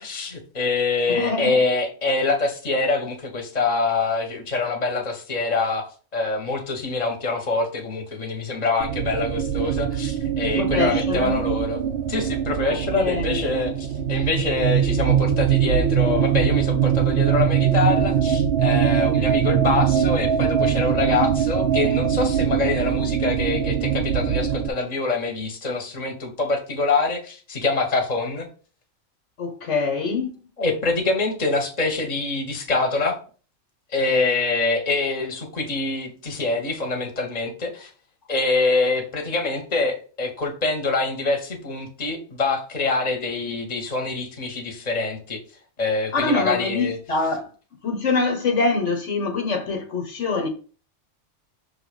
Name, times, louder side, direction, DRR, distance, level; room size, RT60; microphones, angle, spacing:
voice 1, 0.0-5.9 6.1-11.8 12.1-28.5 30.6-33.2 33.9-37.9 38.3-45.4 45.8-47.0, left 3 dB, 35° left, 1.3 m, -25 dB
voice 2, 1.1-1.5 10.6-11.5 12.7-13.4 29.4-30.3 46.1-47.5 47.8-50.5, left 3 dB, 65° left, 1.3 m, -24 dB
sound 1, 8.8-24.7, right 9 dB, 60° right, 0.7 m, -22 dB
5.9 x 3.2 x 5.1 m
omnidirectional pair, 1.3 m